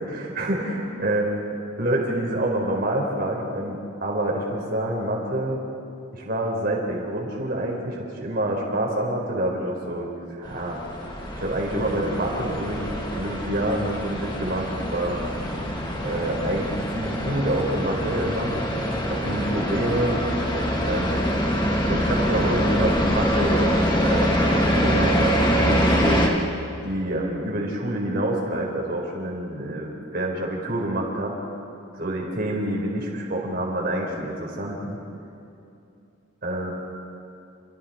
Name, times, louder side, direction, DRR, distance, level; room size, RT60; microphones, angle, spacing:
voice 1, 0.1-1.3 1.8-5.6 6.1-10.8 11.3-12.8 13.1-15.2 16.0-18.6 19.0-20.1 20.8-21.2 21.9-24.4 24.7-26.3 26.8-31.4 32.0-35.0 36.4-36.7, right 1 dB, 45° right, -1 dB, 4.7 m, -27 dB
sound 1, 10.4-26.3, equal, 20° left, 2.3 m, -24 dB
28.5 x 28.5 x 4.5 m, 2.6 s
head